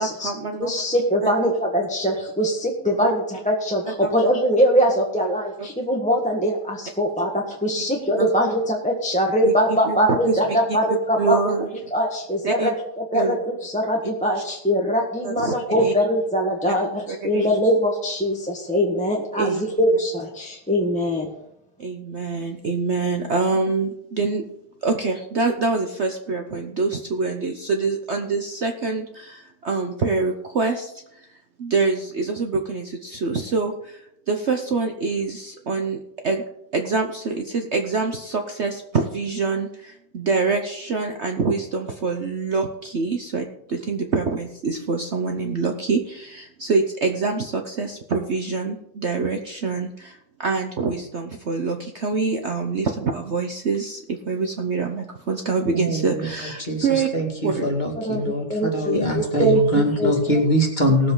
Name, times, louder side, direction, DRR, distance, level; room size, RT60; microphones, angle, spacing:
voice 1, 0.0-0.8 1.2-1.3 2.9-3.1 3.8-4.3 8.2-8.3 9.4-10.4 11.2-11.7 12.4-12.7 13.1-13.3 14.3-14.4 15.2-15.9 17.1-17.5 19.4-19.7 21.8-24.4 24.8-36.4 36.7-57.1 57.4-57.6, right 4 dB, 50° right, 4 dB, 1.0 m, -25 dB
voice 2, 0.6-11.5 11.9-21.3 57.9-60.4, equal, 5° left, -1 dB, 1.4 m, -22 dB
voice 3, 55.7-56.9 57.1-61.1, equal, 25° left, 0 dB, 2.3 m, -23 dB
19.0 x 7.6 x 3.9 m, 0.79 s
omnidirectional pair, 1.8 m